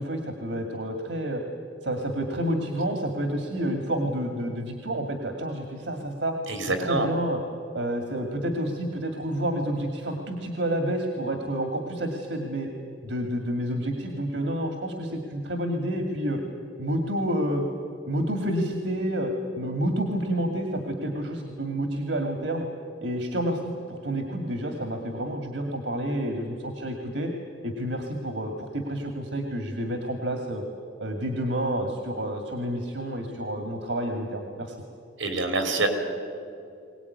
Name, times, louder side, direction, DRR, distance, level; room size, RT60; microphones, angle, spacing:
voice 1, 0.0-1.4 1.8-6.3 6.6-7.4 7.7-12.7 13.0-16.4 16.8-17.7 18.1-19.3 19.6-22.6 23.0-27.3 27.6-30.6 31.0-34.8, right 1 dB, 70° right, 4 dB, 2.1 m, -29 dB
voice 2, 6.5-7.1 35.2-35.9, right 2 dB, 90° right, 6 dB, 3.8 m, -25 dB
22.5 x 18.5 x 9.6 m, 2.6 s
head